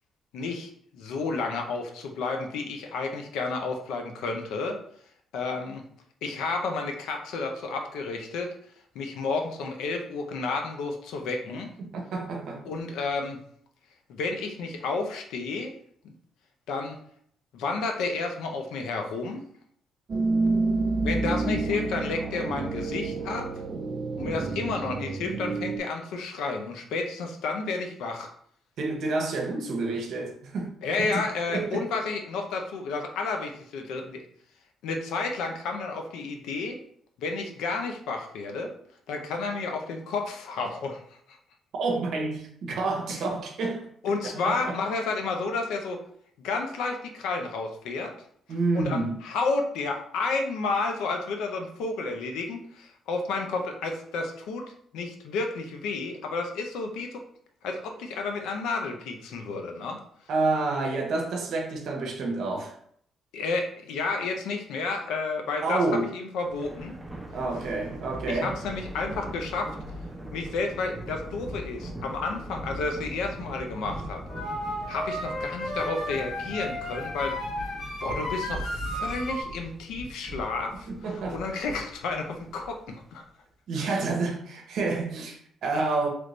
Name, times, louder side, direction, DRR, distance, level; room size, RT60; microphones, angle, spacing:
voice 1, 0.3-4.8 5.3-5.8 6.2-8.5 8.9-11.7 12.6-13.4 14.1-15.7 16.7-17.0 17.5-19.4 21.0-23.5 24.2-28.3 30.8-34.2 34.8-36.8 37.2-38.7 39.1-41.0 41.3-41.4 44.0-46.0 46.4-48.1 48.7-54.6 54.9-57.2 57.6-60.0 63.3-66.9 68.3-69.8 70.3-74.2 74.9-77.4 78.0-83.2 83.8-84.0, left 3 dB, 90° left, 0.6 m, -31 dB
voice 2, 11.8-12.7 21.4-21.5 28.8-31.9 41.8-43.9 44.4-44.8 48.5-49.2 60.3-62.8 65.6-66.1 67.3-68.5 80.9-81.4 83.7-86.1, right 3 dB, 75° right, 0.7 m, -29 dB
sound 1, 20.1-25.8, right 3 dB, 40° right, 0.4 m, -29 dB
Thunder, 66.4-83.0, right 1 dB, 10° right, 0.7 m, -40 dB
sound 2, 74.3-79.4, left 1 dB, 45° left, 1.1 m, -33 dB
3.2 x 2.5 x 3.1 m
cardioid pair, 90°, 0 cm